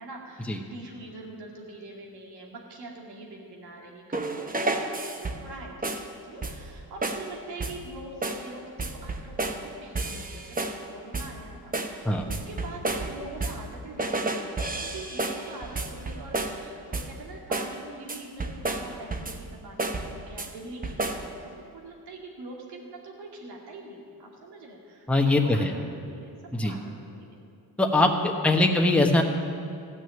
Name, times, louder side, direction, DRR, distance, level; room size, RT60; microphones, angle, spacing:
voice 1, 0.0-14.4 14.8-25.1 25.4-26.3 26.6-27.4 28.1-28.7, right 2 dB, 80° right, -1 dB, 2.5 m, -43 dB
sound 1, 4.1-5.5 5.8-6.1 6.4-6.7 7.0-7.3 7.6-7.9 8.2-8.5 8.8-9.7 10.0-10.8 11.1-11.4 11.7-13.7 14.0-16.6 16.9-17.2 17.5-17.8 18.1-19.5 19.8-20.5 20.8-21.3, right 2 dB, 20° right, 1.0 m, -31 dB
voice 2, 25.1-25.7 26.5-26.7 27.8-28.1 28.4-29.2, left 2 dB, 5° left, 2 dB, 1.2 m, -21 dB
14.0 x 6.3 x 9.2 m, 2.3 s
cardioid pair, 75°, 39 cm